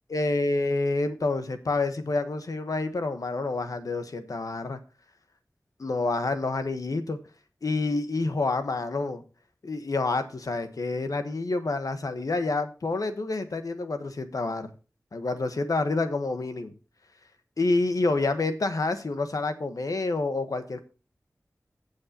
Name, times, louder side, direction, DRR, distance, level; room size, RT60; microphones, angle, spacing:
voice 1, 0.1-4.8 5.8-7.2 7.6-9.2 9.6-14.7 15.1-16.7 17.6-20.8, left 3 dB, 85° left, 8 dB, 1.2 m, -28 dB
16.5 x 6.4 x 2.9 m, 0.34 s
wide cardioid pair, 50°, 6 cm